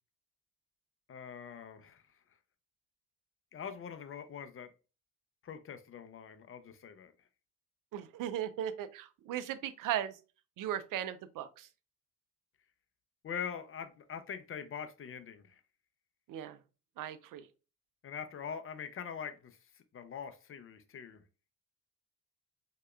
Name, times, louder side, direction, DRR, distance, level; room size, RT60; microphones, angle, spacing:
voice 1, 1.1-2.0 3.5-4.7 5.4-7.1 13.2-15.6 18.0-19.6 19.9-21.2, left 7 dB, 30° left, 0.6 m, -43 dB
voice 2, 7.9-10.2 10.6-11.7 16.3-16.6 17.0-17.5, right 11 dB, 50° right, 0.6 m, -37 dB
4.6 x 2.8 x 2.2 m
figure-of-eight pair, 45°, 43 cm